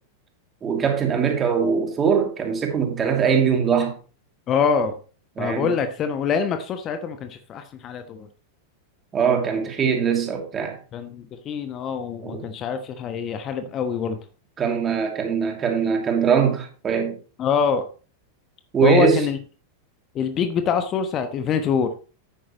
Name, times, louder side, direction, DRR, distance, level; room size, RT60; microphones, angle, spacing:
voice 1, 0.6-4.0 5.4-5.7 9.1-10.8 12.2-12.4 14.6-17.2 18.7-19.2, right 6 dB, 20° right, 2.6 m, -21 dB
voice 2, 4.5-5.0 5.4-8.3 10.9-14.2 17.4-17.9 18.8-19.4 20.1-21.9, left 6 dB, 30° left, 1.1 m, -24 dB
10.5 x 9.2 x 3.0 m
figure-of-eight pair, 90°, 0 cm